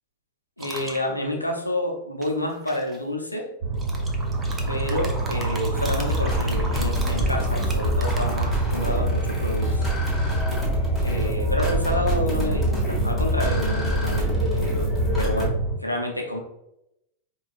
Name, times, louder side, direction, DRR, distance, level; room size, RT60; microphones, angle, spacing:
voice 1, 0.6-3.5 4.7-9.9 11.0-15.5 15.8-16.4, left 1 dB, 85° left, 2 dB, 0.5 m, -29 dB
sound 1, 0.6-1.0 2.2-3.0 3.7-9.1, right 2 dB, 15° right, 0.6 m, -36 dB
sound 2, 3.6-15.7, right 2 dB, 40° right, 1.4 m, -27 dB
sound 3, 5.7-15.5, left 1 dB, ahead, 1.2 m, -27 dB
4.7 x 2.3 x 2.4 m, 0.81 s
figure-of-eight pair, 90°, 0 cm